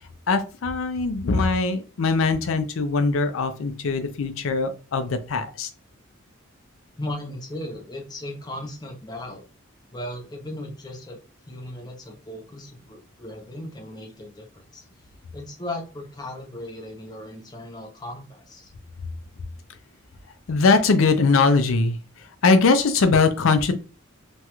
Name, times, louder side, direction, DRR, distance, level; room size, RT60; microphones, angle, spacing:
voice 1, 0.3-5.7 20.5-22.0 22.4-23.7, left 4 dB, 70° left, 9 dB, 0.5 m, -21 dB
voice 2, 7.0-9.4 9.9-11.2 11.5-14.8 15.3-18.7, left 1 dB, 20° left, 2 dB, 0.6 m, -36 dB
3.0 x 2.3 x 2.9 m, 0.34 s
head